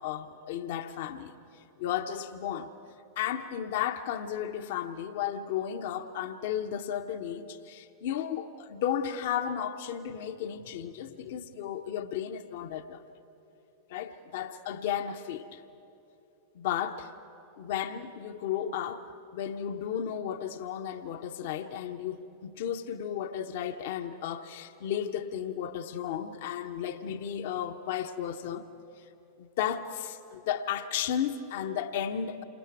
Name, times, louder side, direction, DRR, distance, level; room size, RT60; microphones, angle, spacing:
voice 1, 0.0-1.3 1.8-2.7 3.2-13.0 13.9-15.6 16.5-17.1 17.6-28.7 29.0-29.1 29.4-32.4, left 9 dB, 55° left, 8 dB, 0.9 m, -34 dB
28.5 x 26.0 x 4.7 m, 3.0 s
figure-of-eight pair, 90°, 0 cm